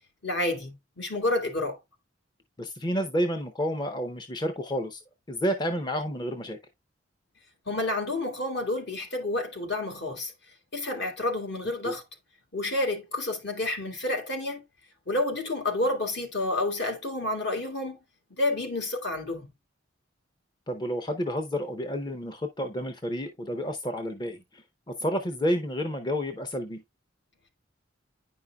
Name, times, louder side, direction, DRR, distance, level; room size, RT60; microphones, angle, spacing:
voice 1, 0.2-1.8 7.7-10.3 10.7-12.0 12.5-14.6 15.1-18.0 18.4-19.5, left 2 dB, 60° left, 2.0 m, -29 dB
voice 2, 2.6-5.0 5.3-6.6 11.8-11.9 20.7-26.8, equal, 20° left, 0.6 m, -30 dB
9.6 x 5.5 x 2.3 m
head